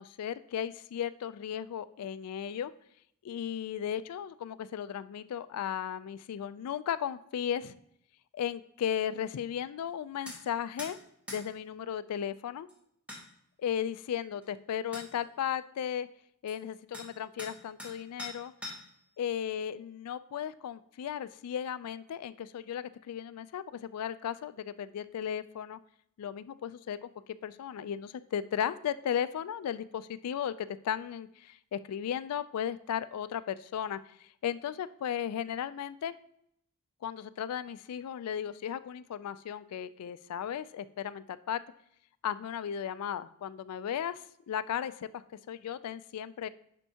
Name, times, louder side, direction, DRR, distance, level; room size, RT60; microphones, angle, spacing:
voice 1, 0.0-2.7 3.2-7.8 8.3-11.0 11.3-12.7 13.6-16.1 16.4-18.5 19.2-25.8 26.2-27.1 27.4-36.1 37.0-41.6 42.2-45.2 45.5-46.5, left 9 dB, 85° left, 14 dB, 0.3 m, -35 dB
sound 1, 10.3-10.4 10.8-10.9 11.3-11.4 12.7-12.8 13.1-13.2 14.4-14.5 14.9-15.1 16.5-16.6 16.9-17.1 17.4-17.9 18.2-19.0, left 1 dB, 5° right, 1.3 m, -42 dB
10.5 x 4.4 x 2.8 m, 0.73 s
head